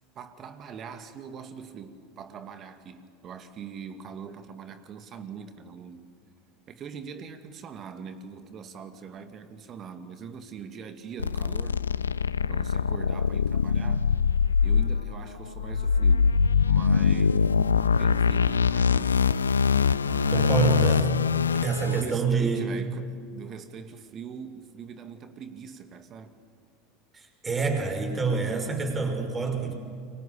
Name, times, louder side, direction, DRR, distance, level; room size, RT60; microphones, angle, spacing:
voice 1, 0.1-6.0 6.7-11.8 12.5-14.1 14.6-16.2 16.7-17.6 17.9-19.3 20.0-20.8 21.8-26.3, right 6 dB, 40° right, 8 dB, 2.2 m, -42 dB
sound 1, 11.2-22.0, left 6 dB, 80° left, 0.6 m, -23 dB
voice 2, 20.3-21.2 21.6-22.8 27.1-29.7, right 5 dB, 20° right, 4 dB, 6.1 m, -27 dB
29.5 x 24.5 x 6.9 m, 2.3 s
figure-of-eight pair, 75°, 0 cm